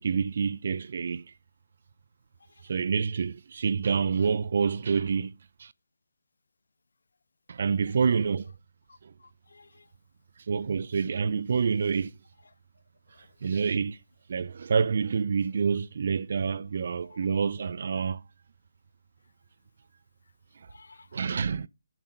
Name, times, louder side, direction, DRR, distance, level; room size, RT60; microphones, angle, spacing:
voice 1, 0.0-1.3 2.7-5.3 5.6-5.7 7.5-8.5 9.0-9.1 10.5-12.1 13.4-14.0 14.3-18.2 20.6-20.7 21.1-21.7, right 5 dB, 50° right, 0.4 m, -27 dB
voice 2, 8.9-9.9 13.1-13.5 17.1-17.2 20.7-21.1, left 4 dB, 70° left, 0.5 m, -57 dB
6.6 x 6.0 x 5.4 m
figure-of-eight pair, 150°, 0 cm